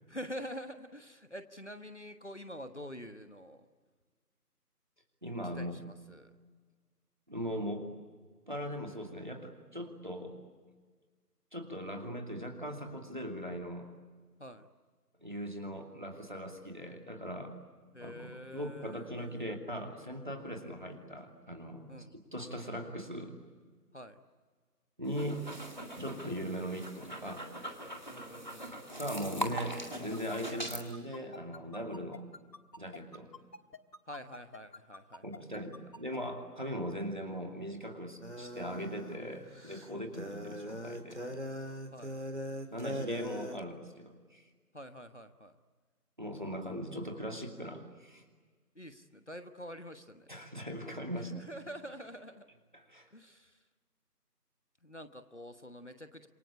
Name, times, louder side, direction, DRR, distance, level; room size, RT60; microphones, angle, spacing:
voice 1, 0.1-3.7 5.5-6.3 14.4-14.7 17.9-19.6 21.9-22.2 23.9-24.2 28.1-29.0 34.1-35.4 39.9-40.3 41.9-42.2 44.7-45.6 48.7-50.3 51.2-52.5 53.1-53.6 54.8-56.3, equal, 45° left, 9 dB, 1.3 m, -47 dB
voice 2, 5.2-5.8 7.3-7.9 8.5-10.4 11.5-13.9 15.2-17.6 18.0-23.3 25.0-25.4 25.9-27.5 29.0-32.2 32.8-33.3 35.2-41.2 42.7-44.5 46.2-48.2 50.3-51.5 52.7-53.1, equal, 30° right, 3 dB, 2.6 m, -40 dB
sound 1, 25.0-30.8, right 1 dB, 30° left, 2.1 m, -41 dB
sound 2, 29.9-36.2, left 3 dB, 90° left, 1.7 m, -48 dB
sound 3, 38.2-43.6, equal, 45° right, 2.0 m, -41 dB
27.5 x 24.0 x 8.6 m, 1.5 s
figure-of-eight pair, 175°, 48 cm